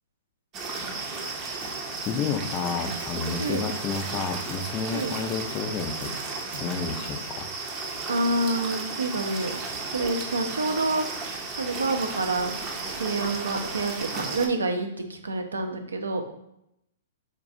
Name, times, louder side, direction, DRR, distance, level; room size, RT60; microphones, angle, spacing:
sound 1, 0.5-14.5, right 3 dB, 30° right, 0.5 m, -34 dB
sound 2, 1.1-8.1, right 1 dB, 60° right, 1.4 m, -48 dB
voice 1, 2.0-6.1 6.6-7.5, left 6 dB, 30° left, 7 dB, 0.3 m, -30 dB
voice 2, 8.1-9.6 9.9-11.0 11.6-12.6 13.0-16.2, right 2 dB, 80° right, 5 dB, 0.4 m, -27 dB
3.8 x 2.3 x 2.6 m, 0.81 s
figure-of-eight pair, 115°, 0 cm